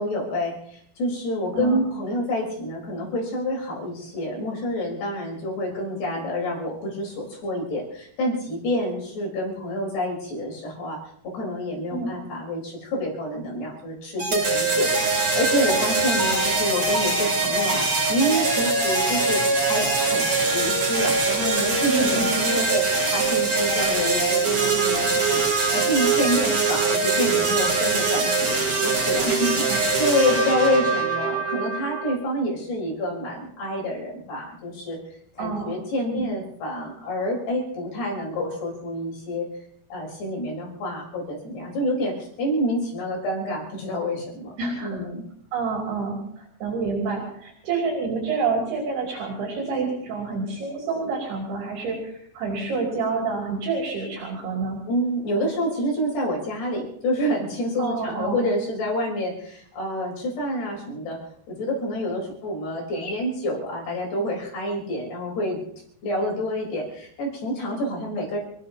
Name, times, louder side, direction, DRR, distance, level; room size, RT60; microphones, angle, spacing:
voice 1, 0.0-11.0 11.2-35.0 35.4-39.5 39.9-44.5 44.8-45.2 54.9-61.2 61.5-65.6 66.0-68.4, equal, 80° left, -2 dB, 6.2 m, -28 dB
sound 1, 14.2-32.2, right 3 dB, 40° right, 5.5 m, -23 dB
voice 2, 21.9-22.3 26.3-26.5 29.2-29.8 35.4-35.7 36.1-36.3 44.6-45.0 45.5-46.2 46.6-54.8 57.8-58.4, right 4 dB, 75° right, -1 dB, 4.8 m, -28 dB
27.5 x 16.5 x 2.8 m, 0.65 s
omnidirectional pair, 4.6 m